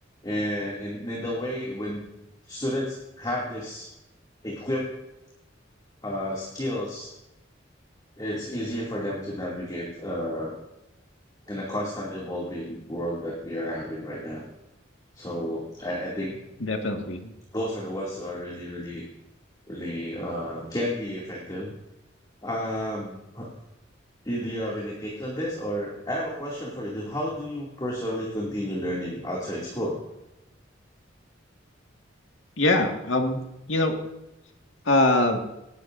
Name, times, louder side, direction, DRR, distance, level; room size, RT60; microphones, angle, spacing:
voice 1, 0.2-2.0 2.4-3.9 4.4-4.9 6.0-7.1 8.2-10.5 11.5-14.4 15.1-16.4 17.5-19.0 19.7-21.7 22.4-23.5 24.2-30.0, equal, 20° left, -4 dB, 2.5 m, -31 dB
voice 2, 16.6-17.3 32.6-33.4 33.7-34.0 34.9-35.4, left 2 dB, 85° left, 3 dB, 1.8 m, -23 dB
18.5 x 11.5 x 2.6 m, 0.91 s
head